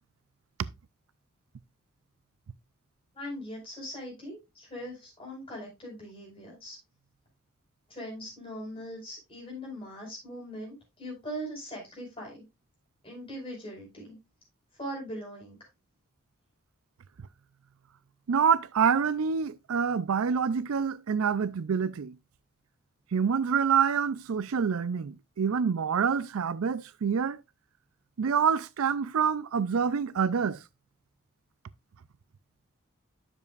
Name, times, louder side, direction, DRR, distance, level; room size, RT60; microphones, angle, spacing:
voice 1, 3.1-6.8 7.9-12.4 13.0-14.2 14.8-15.6, equal, 25° left, 5.2 m, -40 dB
voice 2, 18.3-22.2 23.1-27.4 28.2-30.6, right 6 dB, 90° right, 0.4 m, -26 dB
11.0 x 7.0 x 2.4 m
head